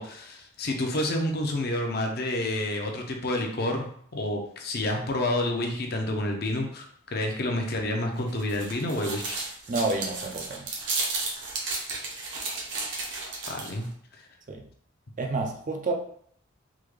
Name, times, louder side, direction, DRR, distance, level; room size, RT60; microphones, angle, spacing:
voice 1, 0.0-9.4 13.5-13.9, left 1 dB, 50° left, 2 dB, 0.6 m, -29 dB
sound 1, 8.2-13.8, right 3 dB, 60° right, 0.8 m, -33 dB
voice 2, 9.7-10.7 14.5-14.6 15.2-15.9, right 3 dB, 40° right, 2 dB, 0.4 m, -29 dB
3.6 x 2.2 x 3.1 m, 0.63 s
head